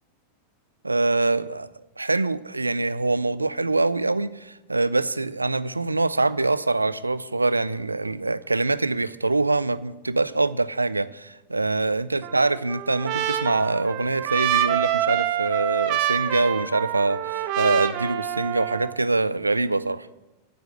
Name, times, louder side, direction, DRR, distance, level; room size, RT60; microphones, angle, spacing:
voice 1, 0.8-1.7 2.0-20.1, right 3 dB, 80° right, 0.4 m, -24 dB
Trumpet, 12.2-19.0, right 12 dB, 45° right, 0.8 m, -26 dB
9.3 x 8.0 x 7.5 m
figure-of-eight pair, 90°, 0 cm